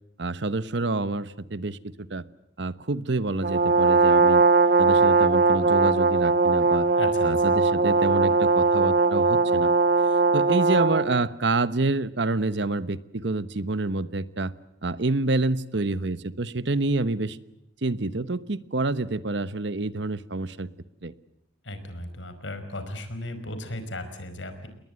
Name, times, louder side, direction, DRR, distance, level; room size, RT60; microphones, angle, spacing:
voice 1, 0.2-2.2 2.6-4.4 4.8-6.9 7.2-9.7 10.3-14.5 14.8-17.4 17.8-20.7 21.0-21.1, right 2 dB, 70° right, 15 dB, 1.1 m, -28 dB
Brass instrument, 3.4-11.2, right 3 dB, 50° right, 1.2 m, -20 dB
voice 2, 7.0-7.6 21.6-24.7, left 1 dB, 85° left, 9 dB, 4.8 m, -36 dB
29.5 x 21.0 x 7.8 m, 0.86 s
head